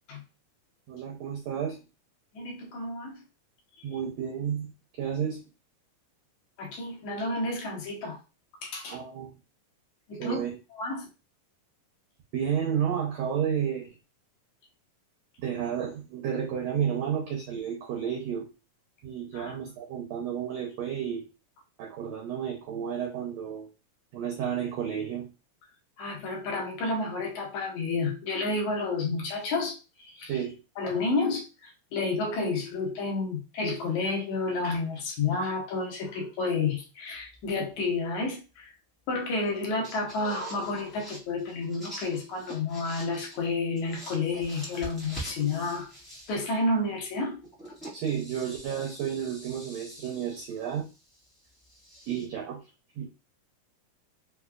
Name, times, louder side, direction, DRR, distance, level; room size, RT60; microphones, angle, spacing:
voice 1, 0.9-1.8 3.8-5.4 8.9-9.3 10.2-10.5 12.3-13.9 15.4-18.5 19.0-21.2 21.8-23.7 24.1-25.3 30.3-30.6 47.9-50.9 52.1-52.6 53.0-53.1, right 8 dB, 85° right, -2 dB, 1.5 m, -31 dB
voice 2, 2.3-3.2 6.6-8.2 8.6-9.0 10.1-10.4 10.7-11.1 19.3-19.6 26.0-29.8 30.1-30.4 30.8-38.7 39.1-45.9 46.3-47.4, left 3 dB, 75° left, 0 dB, 1.9 m, -30 dB
sound 1, 37.1-37.7 39.5-39.6 39.8-43.4 43.7-46.6 47.4-52.3, equal, ahead, 0.5 m, -45 dB
5.4 x 2.2 x 2.3 m, 0.30 s
omnidirectional pair, 3.9 m